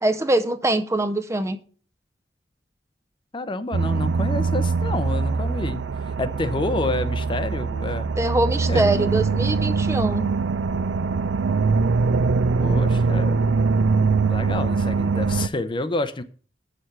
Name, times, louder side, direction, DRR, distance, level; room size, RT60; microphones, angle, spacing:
voice 1, 0.0-1.6 8.2-10.3, right 1 dB, 15° right, 10 dB, 0.5 m, -23 dB
voice 2, 3.3-5.9 6.2-8.1 8.7-8.9 12.6-13.4 14.3-16.2, left 2 dB, 25° left, 12 dB, 0.6 m, -28 dB
sound 1, 3.7-15.5, right 4 dB, 80° right, 0.5 m, -22 dB
7.8 x 6.7 x 5.6 m, 0.43 s
head